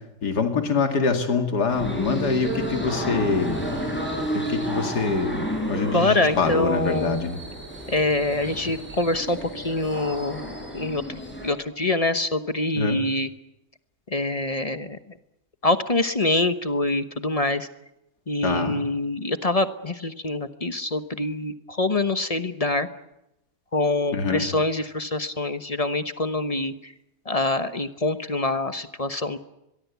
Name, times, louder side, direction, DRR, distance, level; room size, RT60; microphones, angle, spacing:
voice 1, 0.2-3.6 4.3-7.4 12.8-13.0 18.4-18.8 24.1-24.4, left 4 dB, 80° left, 5 dB, 2.7 m, -25 dB
sound 1, 1.7-11.5, equal, 5° left, 7.5 m, -31 dB
voice 2, 5.9-7.2 7.9-13.3 14.1-15.0 15.6-17.7 18.3-22.9 23.7-26.9 27.3-29.4, left 2 dB, 25° left, 10 dB, 0.9 m, -25 dB
22.5 x 22.5 x 8.3 m, 0.87 s
omnidirectional pair, 1.7 m